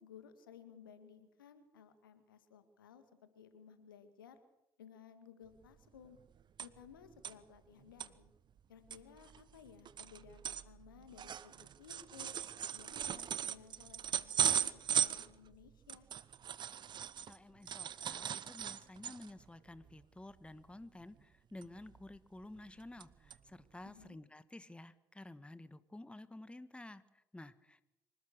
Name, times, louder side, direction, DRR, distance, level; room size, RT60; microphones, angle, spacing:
voice 1, 0.0-3.0 3.4-4.4 4.8-6.2 6.6-8.3 8.7-12.4 12.7-16.1 23.8-24.2, left 7 dB, 80° left, 10 dB, 1.9 m, -58 dB
sound 1, 5.6-5.7 6.0-6.9 7.2-7.3 7.8-8.1 8.6-8.7 8.9-17.4 17.7-19.4 19.8-20.0 20.3-20.5 21.6-22.2 22.6-23.0 23.3-23.4 24.0-24.1, right 9 dB, 45° right, 1.0 m, -38 dB
voice 2, 17.3-27.8, left 1 dB, 10° left, 14 dB, 1.4 m, -52 dB
26.0 x 18.5 x 6.6 m, 0.89 s
figure-of-eight pair, 50°, 11 cm